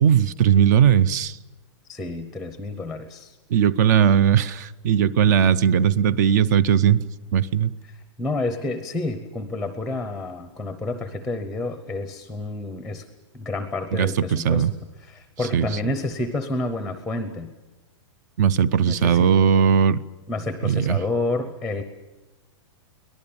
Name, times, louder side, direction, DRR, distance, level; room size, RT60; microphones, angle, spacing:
voice 1, 0.0-1.4 3.5-7.0 7.3-7.7 13.9-14.7 15.5-15.7 18.4-20.0 20.6-21.0, right 8 dB, 35° right, 20 dB, 0.7 m, -18 dB
voice 2, 1.9-3.4 8.2-13.1 13.3-14.7 15.1-17.5 18.9-19.3 20.3-21.8, left 2 dB, ahead, 10 dB, 0.8 m, -29 dB
23.5 x 18.5 x 8.7 m, 1.2 s
hypercardioid pair, 175°, 16 cm